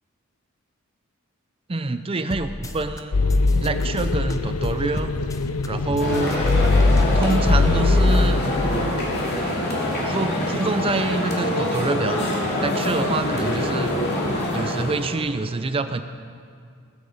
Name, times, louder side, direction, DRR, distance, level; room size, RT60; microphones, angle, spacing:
voice 1, 1.7-3.2 3.6-5.1 5.7-6.4 7.1-8.4 10.0-13.9 14.5-16.0, right 3 dB, 25° right, 9 dB, 0.5 m, -26 dB
sound 1, 2.3-3.0 3.3-5.7 6.0-7.6, left 1 dB, 15° left, 0.7 m, -34 dB
sound 2, 3.1-8.9, left 3 dB, 80° left, 0.6 m, -21 dB
sound 3, 6.0-15.2, left 1 dB, 50° left, 2.9 m, -25 dB
18.5 x 10.0 x 7.1 m, 2.3 s
head